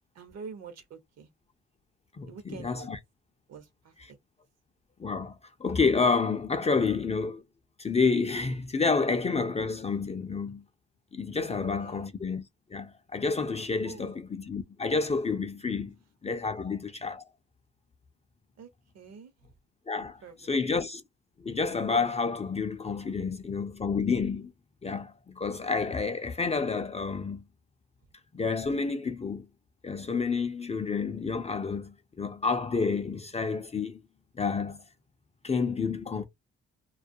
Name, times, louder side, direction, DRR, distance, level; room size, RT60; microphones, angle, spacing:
voice 1, 0.1-1.3 2.3-2.9 3.5-3.9 11.5-12.1 13.8-14.1 16.6-16.7 18.6-18.7 18.9-19.3 20.2-20.7, right 5 dB, 60° right, 0.8 m, -46 dB
voice 2, 2.2-3.0 5.0-7.4 7.8-10.6 11.1-12.4 12.7-15.9 16.2-17.2 19.9-21.0 21.4-24.5 24.8-27.4 28.3-29.5 29.8-34.0 34.4-34.8 35.4-36.2, left 4 dB, 20° left, 0.4 m, -29 dB
2.3 x 2.2 x 2.6 m
cardioid pair, 90°, 30 cm